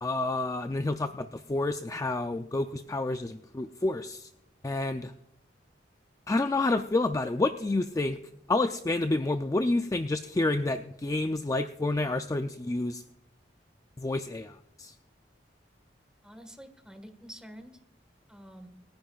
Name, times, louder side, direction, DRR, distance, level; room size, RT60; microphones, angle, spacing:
voice 1, 0.0-4.3 4.6-5.1 6.3-8.2 8.5-13.0 14.0-14.9, left 2 dB, 20° left, 8 dB, 0.4 m, -29 dB
voice 2, 16.2-17.7 18.3-18.7, equal, 5° right, 7 dB, 1.5 m, -47 dB
27.0 x 10.5 x 2.4 m, 0.80 s
head